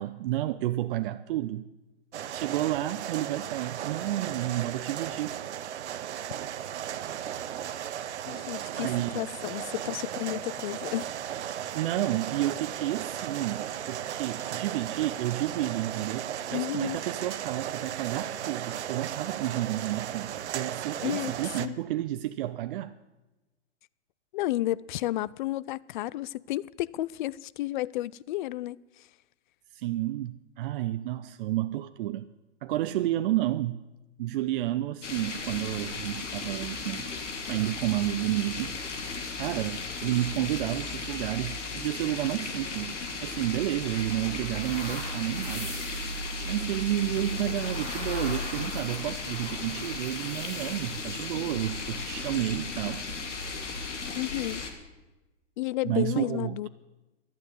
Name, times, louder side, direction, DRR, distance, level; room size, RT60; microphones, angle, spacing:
voice 1, 0.0-1.7 2.3-5.3 8.8-9.3 11.7-22.9 29.7-32.3 32.6-33.8 34.2-37.1 37.4-38.8 39.4-43.0 43.2-45.8 46.4-53.0 55.8-56.7, right 14 dB, 50° right, 0.5 m, -31 dB
sound 1, 2.1-21.7, right 10 dB, 70° right, 0.9 m, -36 dB
voice 2, 8.3-8.9 9.1-11.1 16.5-17.0 21.0-21.3 21.6-21.8 24.3-28.8 54.1-54.6 55.6-56.7, left 16 dB, 45° left, 0.4 m, -32 dB
sound 2, 35.0-54.7, left 3 dB, 80° left, 2.2 m, -35 dB
sound 3, 42.7-52.3, left 1 dB, 20° left, 4.9 m, -44 dB
12.0 x 9.0 x 9.6 m
hypercardioid pair, 120°, 36 cm